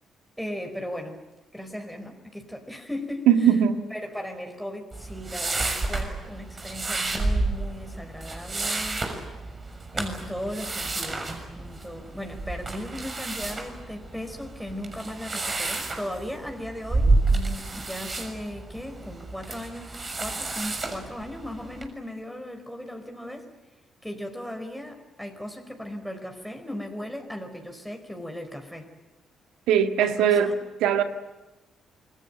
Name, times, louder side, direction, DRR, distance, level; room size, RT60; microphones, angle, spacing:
voice 1, 0.4-1.2 1.5-3.5 3.9-9.0 9.9-23.5 24.0-28.9 30.0-30.6, left 1 dB, ahead, 4.9 m, -37 dB
voice 2, 3.3-3.9 29.7-30.5 30.8-31.0, right 9 dB, 70° right, 1.7 m, -20 dB
sound 1, 4.9-21.9, right 2 dB, 35° right, 6.4 m, -30 dB
28.0 x 21.5 x 9.2 m
hypercardioid pair, 45°, 0 cm